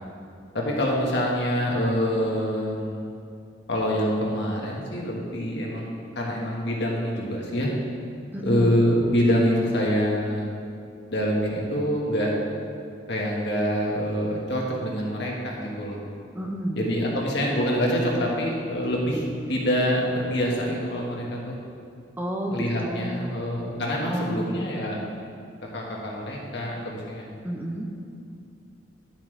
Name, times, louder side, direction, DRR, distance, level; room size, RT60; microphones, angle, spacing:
voice 1, 0.5-3.0 3.7-7.7 8.4-10.5 11.1-12.3 13.1-16.0 16.7-19.2 19.5-21.6 22.5-25.0 25.7-27.3, equal, 65° left, -2 dB, 1.7 m, -25 dB
voice 2, 8.3-8.8 16.3-16.8 22.2-23.4 24.0-24.7 27.4-27.9, right 1 dB, 10° right, 1 dB, 0.7 m, -31 dB
11.5 x 7.5 x 3.4 m, 2.5 s
head